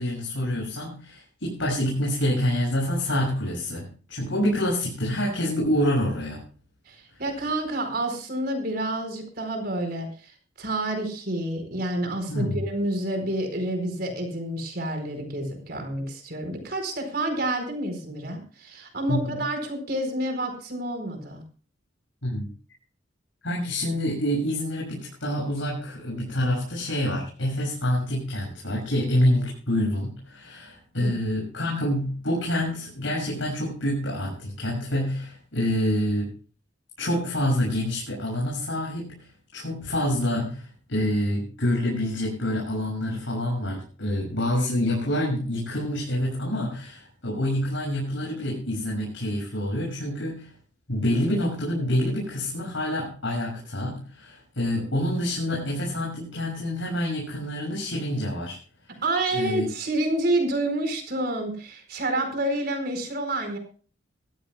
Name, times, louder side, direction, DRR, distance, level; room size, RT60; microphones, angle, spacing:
voice 1, 0.0-6.4 12.3-12.6 19.1-19.4 22.2-22.5 23.4-36.3 37.0-50.5 50.9-58.6 59.3-59.6, left 1 dB, 80° left, -3 dB, 6.5 m, -27 dB
voice 2, 6.9-10.3 10.6-21.4 31.0-31.1 59.0-63.6, right 1 dB, 55° right, 5 dB, 4.6 m, -28 dB
21.5 x 14.0 x 2.2 m, 0.40 s
head